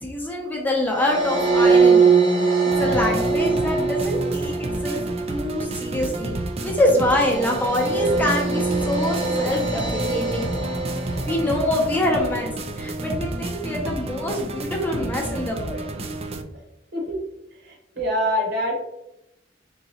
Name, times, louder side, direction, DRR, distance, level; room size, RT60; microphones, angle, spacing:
voice 1, 0.0-2.1 2.8-5.0 5.3-6.3 6.6-10.5 11.2-15.8, left 1 dB, 10° left, -1 dB, 0.7 m, -25 dB
sound 1, 0.9-12.2, right 4 dB, 90° right, 1.2 m, -23 dB
sound 2, 2.7-16.4, right 2 dB, 30° right, 0.4 m, -31 dB
voice 2, 17.6-18.7, equal, 60° right, -1 dB, 1.4 m, -24 dB
3.8 x 3.7 x 2.9 m, 0.86 s
head